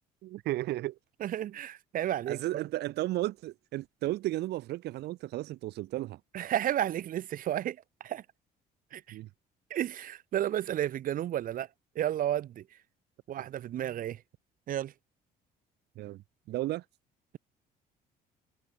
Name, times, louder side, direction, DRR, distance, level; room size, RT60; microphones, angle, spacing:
voice 1, 0.2-1.0 2.3-6.2 9.1-9.3 15.9-16.8, right 16 dB, 80° right, 6.4 m, -34 dB
voice 2, 1.2-2.4 6.3-8.2 8.9-9.2 9.7-11.7 12.0-12.6 13.3-14.2 14.7-14.9, right 11 dB, 55° right, 0.8 m, -32 dB
cardioid pair, 110°, 17 cm